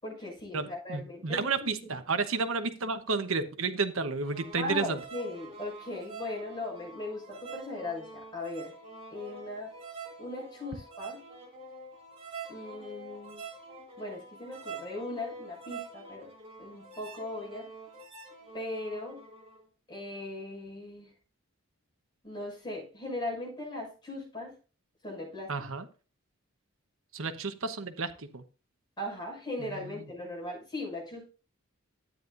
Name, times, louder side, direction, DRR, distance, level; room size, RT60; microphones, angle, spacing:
voice 1, 0.0-1.6 4.6-8.7 9.1-9.7 10.2-11.2 12.5-13.5 14.0-16.3 16.6-17.7 18.5-19.2 19.9-21.1 22.2-24.5 25.0-25.5 29.0-31.3, left 2 dB, 20° left, 6.5 m, -38 dB
voice 2, 0.5-5.0 25.5-25.9 27.1-28.4 29.7-30.0, right 4 dB, 80° right, 1.0 m, -32 dB
sound 1, 4.2-19.6, right 4 dB, 25° right, 2.4 m, -46 dB
12.5 x 9.5 x 2.6 m
head